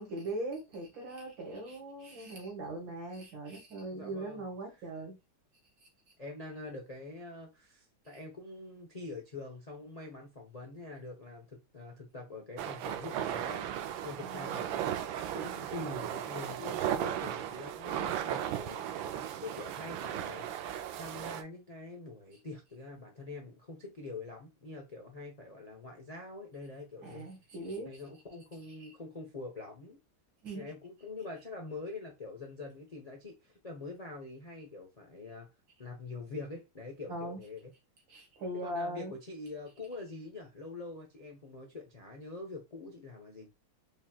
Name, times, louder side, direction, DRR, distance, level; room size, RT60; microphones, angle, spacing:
voice 1, 0.0-5.2 14.2-14.5 27.0-28.0 28.8-28.9 30.4-30.7 37.1-37.4 38.1-39.1, right 1 dB, 70° right, 2.4 m, -40 dB
voice 2, 3.9-4.5 6.2-14.9 15.3-27.3 27.8-30.0 30.5-35.5 35.8-37.7 38.5-43.5, left 3 dB, 35° left, 0.6 m, -45 dB
sound 1, 12.6-21.4, right 10 dB, 90° right, 1.4 m, -36 dB
5.0 x 3.0 x 2.3 m
omnidirectional pair, 2.1 m